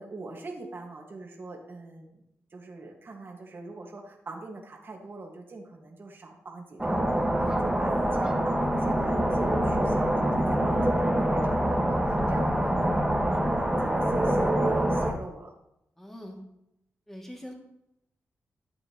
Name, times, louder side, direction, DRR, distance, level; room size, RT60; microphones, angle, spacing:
voice 1, 0.0-2.2 2.5-15.5, right 3 dB, 45° right, 0 dB, 1.6 m, -43 dB
sound 1, 6.8-15.1, right 1 dB, 10° right, 1.4 m, -25 dB
voice 2, 16.0-16.4 17.1-17.5, equal, 5° left, 0 dB, 2.3 m, -43 dB
11.5 x 7.7 x 3.0 m, 0.82 s
cardioid pair, 80°, 5 cm